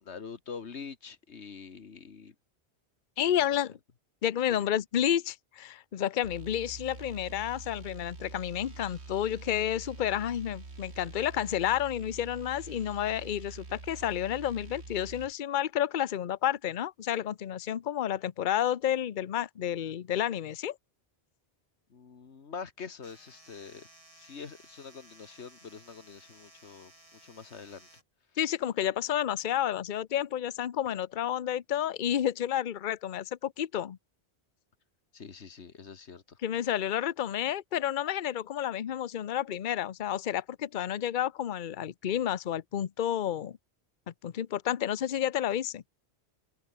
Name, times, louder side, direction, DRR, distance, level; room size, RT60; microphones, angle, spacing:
voice 1, 0.0-2.3 3.2-3.3 4.5-4.7 21.9-23.9 24.1-26.9 27.2-27.9 35.1-36.4, left 5 dB, 90° left, 1.8 m, -45 dB
voice 2, 3.2-3.8 4.2-20.8 28.4-34.0 36.4-43.6 44.2-45.8, left 10 dB, 50° left, 0.8 m, -30 dB
sound 1, 6.2-15.3, right 3 dB, 75° right, 2.8 m, -46 dB
sound 2, 23.0-28.0, right 1 dB, 30° right, 4.7 m, -57 dB
omnidirectional pair, 1.1 m